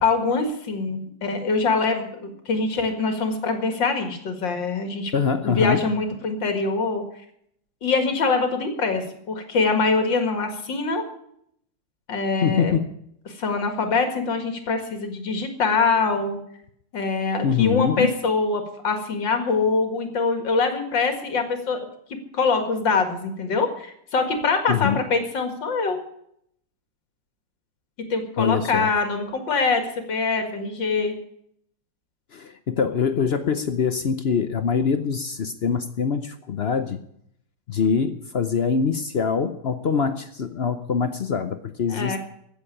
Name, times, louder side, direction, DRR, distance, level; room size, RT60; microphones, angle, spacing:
voice 1, 0.0-5.1 5.4-7.0 7.8-11.0 12.1-12.8 13.3-16.4 16.9-21.8 22.3-26.0 28.1-31.1 41.9-42.2, left 4 dB, 85° left, 6 dB, 2.7 m, -24 dB
voice 2, 5.1-5.8 12.4-12.9 17.4-18.1 24.7-25.0 28.4-28.9 32.3-37.0 37.7-42.2, left 6 dB, 60° left, 10 dB, 0.6 m, -24 dB
15.5 x 7.3 x 9.8 m, 0.72 s
omnidirectional pair, 2.0 m